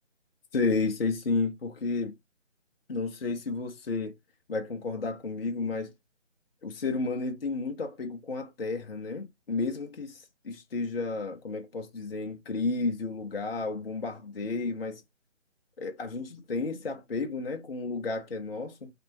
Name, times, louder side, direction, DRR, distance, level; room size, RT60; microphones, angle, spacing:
voice 1, 0.5-2.1 2.9-4.1 4.5-5.9 6.6-15.0 15.8-18.9, left 3 dB, 55° left, 0.6 m, -32 dB
3.2 x 2.7 x 2.9 m
figure-of-eight pair, 150°, 36 cm